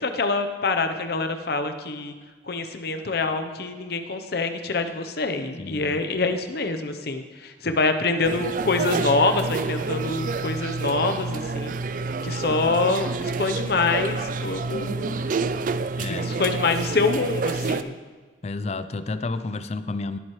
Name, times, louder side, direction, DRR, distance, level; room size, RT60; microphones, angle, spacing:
voice 1, 0.0-2.1 2.4-11.7 12.2-15.2 16.1-18.0, left 3 dB, 60° left, 7 dB, 0.8 m, -25 dB
voice 2, 5.6-6.3 7.6-7.8 16.0-16.3 18.4-20.2, left 3 dB, 35° left, 12 dB, 0.4 m, -31 dB
sound 1, 8.2-17.8, right 4 dB, 45° right, 0.4 m, -28 dB
19.0 x 7.6 x 3.2 m, 1.4 s
head